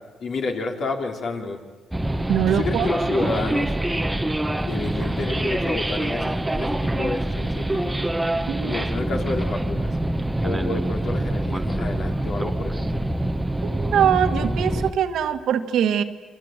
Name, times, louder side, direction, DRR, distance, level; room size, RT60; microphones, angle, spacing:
voice 1, 0.2-1.6 2.5-3.8 4.6-8.0 8.6-9.9 10.4-13.1, left 3 dB, 60° left, 2 dB, 4.0 m, -30 dB
sound 1, 1.9-14.9, right 1 dB, 10° right, 1.1 m, -25 dB
voice 2, 2.3-2.9 8.5-8.7 13.6-16.0, right 9 dB, 75° right, 7 dB, 1.7 m, -22 dB
28.0 x 22.5 x 9.1 m, 1.4 s
cardioid pair, 90°, 0 cm